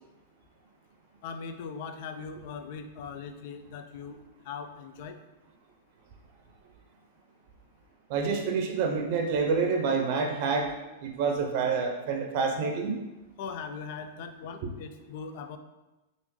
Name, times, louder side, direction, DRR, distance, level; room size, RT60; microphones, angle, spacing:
voice 1, 1.2-4.2 4.4-5.2 13.4-15.6, left 5 dB, 55° left, 7 dB, 0.4 m, -40 dB
voice 2, 8.1-10.7 11.0-13.0, right 5 dB, 55° right, 3 dB, 0.6 m, -27 dB
3.5 x 2.6 x 3.0 m, 1.0 s
hypercardioid pair, 120°, 0 cm